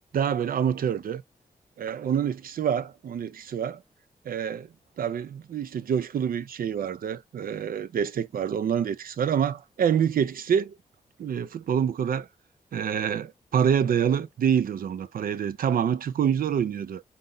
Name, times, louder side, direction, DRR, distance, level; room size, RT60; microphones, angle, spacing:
voice 1, 0.1-1.2 1.8-3.8 4.2-4.7 5.0-10.8 11.2-12.3 12.7-17.0, right 8 dB, 70° right, 0.5 m, -26 dB
4.0 x 2.6 x 3.7 m
cardioid pair, 55°, 15 cm